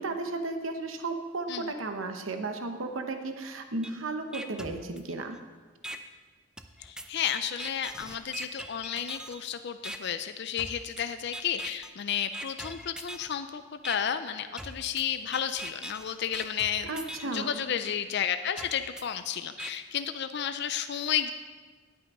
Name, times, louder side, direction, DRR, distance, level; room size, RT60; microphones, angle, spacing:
voice 1, 0.0-5.4 16.8-17.6, right 3 dB, 80° right, 6 dB, 0.9 m, -34 dB
sound 1, 3.8-3.9 4.3-5.4 5.8-6.0 6.6-9.4 9.8-10.0 10.6-11.0 11.3-11.9 12.3-13.3 13.8-14.0 14.6-17.4 17.8-17.9 18.6-19.7, right 1 dB, 5° right, 0.5 m, -41 dB
voice 2, 6.8-16.9 17.3-21.3, left 9 dB, 55° left, 9 dB, 0.4 m, -32 dB
11.0 x 8.4 x 5.3 m, 1.4 s
head